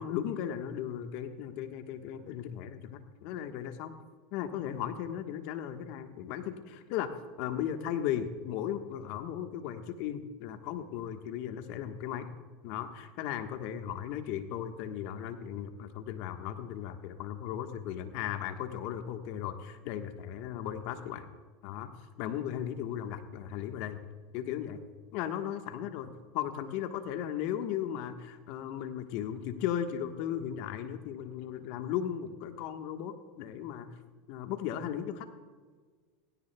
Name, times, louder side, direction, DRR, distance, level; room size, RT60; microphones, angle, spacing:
voice 1, 0.0-3.9 4.3-7.1 7.4-12.3 12.6-21.3 21.6-21.9 22.2-24.0 24.3-24.8 25.1-33.9 34.3-35.3, left 10 dB, 60° left, 7 dB, 1.3 m, -36 dB
17.5 x 16.5 x 2.3 m, 1.5 s
hypercardioid pair, 95°, 2 cm